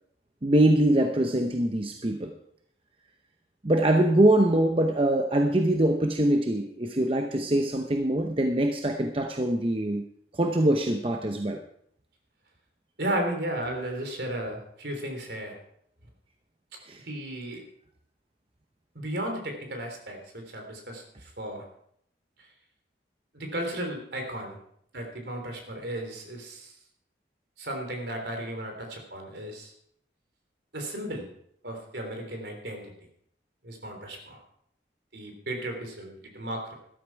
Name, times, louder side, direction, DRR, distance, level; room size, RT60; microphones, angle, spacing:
voice 1, 0.4-2.3 3.6-10.0 10.3-11.6 16.9-17.0, right 1 dB, 30° right, 4 dB, 0.8 m, -23 dB
voice 2, 13.0-15.6 17.0-17.6 18.9-21.6 23.3-24.6 24.9-26.7 27.6-29.7 30.7-31.3 31.6-32.8 33.6-34.4 35.1-36.7, right 1 dB, 65° right, 3 dB, 3.4 m, -34 dB
13.5 x 12.0 x 4.7 m, 0.69 s
head